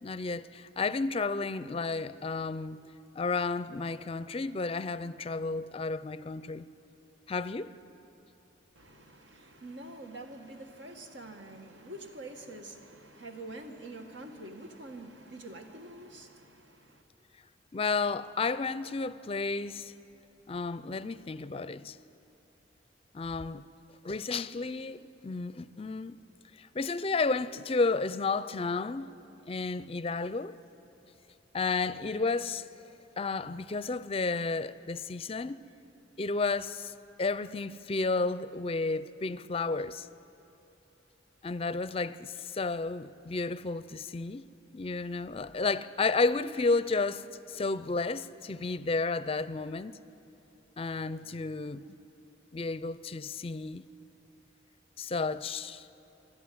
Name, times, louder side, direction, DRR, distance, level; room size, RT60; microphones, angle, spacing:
voice 1, 0.0-2.8 3.2-6.7 7.3-7.7 17.7-19.9 20.5-22.0 23.1-23.7 24.0-26.2 26.6-29.1 29.5-30.6 31.5-32.6 33.2-35.6 36.2-36.9 37.2-40.1 41.4-44.5 44.7-49.9 50.8-52.0 52.5-53.9 55.0-55.9, left 3 dB, 30° left, 0.4 m, -32 dB
voice 2, 8.8-17.0, right 1 dB, 85° right, 2.0 m, -46 dB
28.0 x 12.0 x 9.5 m
head